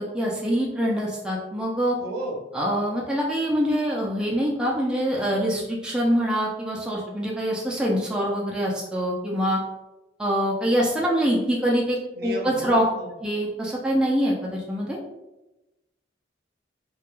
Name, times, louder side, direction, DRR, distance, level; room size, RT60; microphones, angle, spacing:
voice 1, 0.0-2.0 2.5-9.6 10.2-12.8 13.2-15.0, equal, 5° right, -4 dB, 0.3 m, -24 dB
voice 2, 2.0-2.4 12.2-13.1, right 1 dB, 55° right, 0 dB, 0.5 m, -33 dB
2.2 x 2.1 x 2.9 m, 0.98 s
head